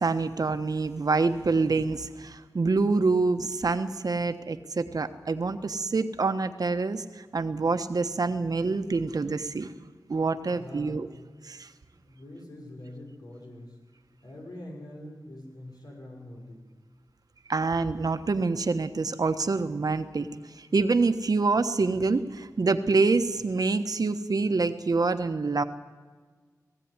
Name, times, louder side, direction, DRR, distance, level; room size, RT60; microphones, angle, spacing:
voice 1, 0.0-9.7 10.1-11.1 11.4-11.7 17.5-25.6, right 3 dB, 70° right, 9 dB, 1.3 m, -26 dB
voice 2, 10.5-11.1 12.0-13.8 14.2-16.7, left 1 dB, 85° left, 0 dB, 6.4 m, -44 dB
19.5 x 15.5 x 9.8 m, 1.4 s
wide cardioid pair, 70°, 7 cm